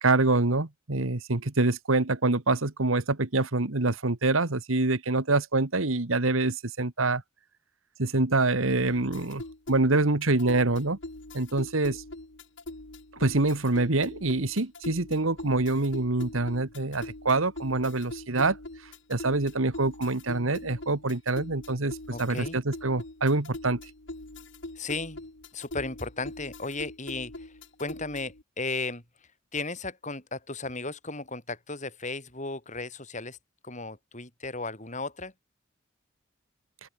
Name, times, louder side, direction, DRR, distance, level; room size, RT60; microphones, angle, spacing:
voice 1, 0.0-7.2 8.0-9.4 9.7-11.0 11.3-12.0 13.1-18.6 19.1-23.8, right 2 dB, 85° right, 1.7 m, -25 dB
sound 1, 8.8-28.4, left 2 dB, 65° left, 2.4 m, -43 dB
voice 2, 22.1-22.6 24.8-25.2 25.5-27.5 27.8-29.0 29.5-33.4 33.6-35.3, left 3 dB, 35° left, 6.1 m, -35 dB
open air
head